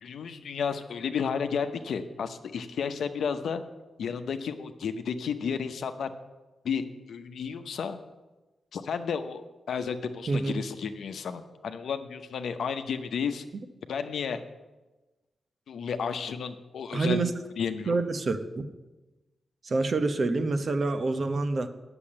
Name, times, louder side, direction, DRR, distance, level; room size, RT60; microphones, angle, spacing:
voice 1, 0.0-3.6 4.0-6.1 6.6-8.0 8.7-9.4 9.7-13.4 13.9-14.4 15.7-17.2 17.6-17.9, left 6 dB, 80° left, 8 dB, 0.7 m, -32 dB
voice 2, 16.9-17.3 17.9-18.7 19.6-21.7, right 3 dB, 55° right, 8 dB, 0.9 m, -27 dB
8.5 x 7.0 x 8.7 m, 1.1 s
cardioid pair, 50°, 0 cm